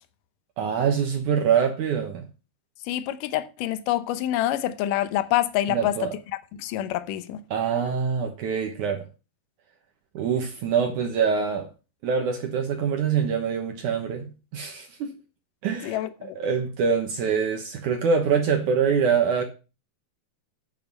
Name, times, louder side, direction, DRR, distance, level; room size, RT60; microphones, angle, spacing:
voice 1, 0.6-2.3 5.7-6.1 7.5-9.0 10.1-11.7 12.0-15.1 15.6-19.4, right 6 dB, 65° right, 2.4 m, -25 dB
voice 2, 2.9-6.0 6.6-7.4 15.8-16.4, left 13 dB, 75° left, 2.3 m, -26 dB
9.1 x 7.6 x 5.3 m
omnidirectional pair, 4.3 m